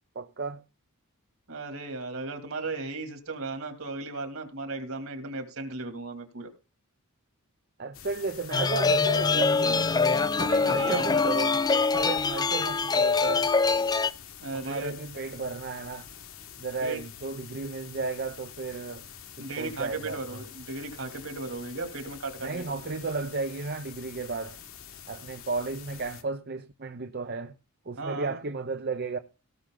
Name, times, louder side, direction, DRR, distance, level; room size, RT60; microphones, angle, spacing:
voice 1, 0.1-0.6 7.8-10.0 10.7-11.6 11.9-13.5 14.5-16.1 16.6-19.0 19.4-20.4 22.4-24.6 25.1-27.5 27.9-29.2, right 3 dB, 45° right, 0.7 m, -33 dB
voice 2, 1.5-6.5 10.4-11.2 14.4-14.9 16.8-17.0 19.4-22.6 28.0-28.3, right 3 dB, 65° right, 2.9 m, -36 dB
sound 1, 7.9-26.2, left 8 dB, 65° left, 1.6 m, -47 dB
sound 2, 8.5-14.1, left 4 dB, 20° left, 0.4 m, -24 dB
17.5 x 6.2 x 3.9 m
head